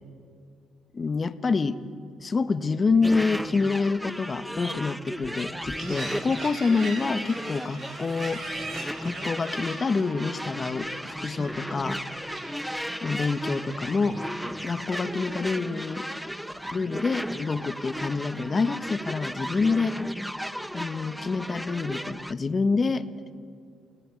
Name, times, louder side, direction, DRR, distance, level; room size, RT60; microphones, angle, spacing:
voice 1, 0.9-1.8 2.2-8.4 9.0-12.0 13.0-14.2 14.6-16.0 16.7-20.0 20.7-23.1, left 4 dB, 35° left, 11 dB, 1.1 m, -27 dB
sound 1, 3.0-22.3, equal, ahead, 0.7 m, -35 dB
sound 2, 5.8-19.9, right 2 dB, 50° right, 6.2 m, -43 dB
28.5 x 16.5 x 9.9 m, 2.3 s
cardioid pair, 90°, 0 cm